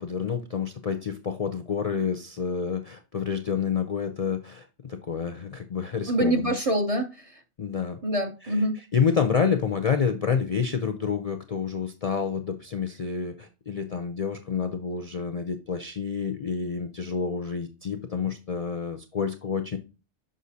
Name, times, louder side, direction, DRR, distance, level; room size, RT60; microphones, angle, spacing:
voice 1, 0.0-6.5 7.6-8.0 8.4-8.6 8.9-19.8, left 6 dB, 50° left, 0.4 m, -28 dB
voice 2, 6.1-7.4 8.0-8.7, right 1 dB, 40° right, 0.6 m, -25 dB
6.3 x 5.6 x 2.7 m
omnidirectional pair, 1.2 m